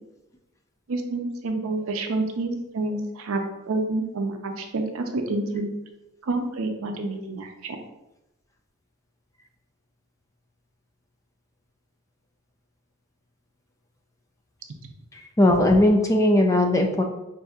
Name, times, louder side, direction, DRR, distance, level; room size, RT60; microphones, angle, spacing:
voice 1, 0.9-5.7 6.2-7.8, right 2 dB, 75° right, 4 dB, 0.5 m, -28 dB
voice 2, 15.1-17.0, left 1 dB, 15° left, 3 dB, 0.3 m, -19 dB
5.4 x 2.6 x 2.4 m, 0.94 s
head